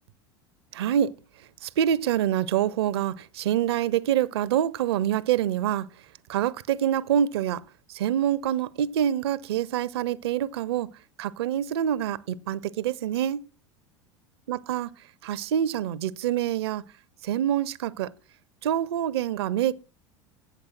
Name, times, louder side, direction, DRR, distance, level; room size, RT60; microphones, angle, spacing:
voice 1, 0.7-1.1 1.6-5.9 6.3-7.6 7.9-10.9 11.2-13.4 14.5-14.9 15.2-16.8 17.2-18.1 18.6-19.7, right 10 dB, 60° right, 0.5 m, -26 dB
8.3 x 7.8 x 6.0 m
figure-of-eight pair, 80°, 15 cm